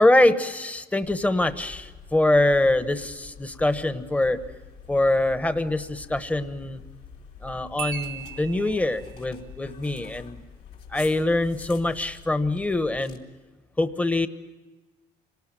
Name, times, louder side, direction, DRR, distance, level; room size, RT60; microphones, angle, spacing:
voice 1, 0.0-4.4 4.9-6.8 7.4-10.4 10.9-13.2 13.8-14.3, left 2 dB, 10° left, 10 dB, 1.1 m, -24 dB
sound 1, 1.0-13.2, left 6 dB, 65° left, 3.2 m, -46 dB
Marimba xylophone, 7.8-9.2, right 12 dB, 65° right, 0.9 m, -37 dB
27.0 x 18.5 x 9.1 m, 1.2 s
cardioid pair, 110°, 17 cm